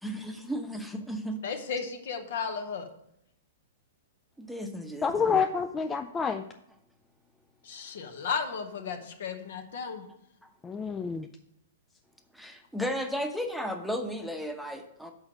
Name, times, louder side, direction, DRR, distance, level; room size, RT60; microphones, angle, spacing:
voice 1, 0.0-1.4 4.4-5.4 12.3-15.1, equal, ahead, 4 dB, 0.8 m, -34 dB
voice 2, 1.4-2.9 7.6-10.1, left 5 dB, 60° left, 7 dB, 1.0 m, -34 dB
voice 3, 5.0-6.4 10.6-11.3, left 6 dB, 15° left, 6 dB, 0.3 m, -28 dB
6.2 x 4.8 x 6.2 m, 0.75 s
figure-of-eight pair, 110°, 0 cm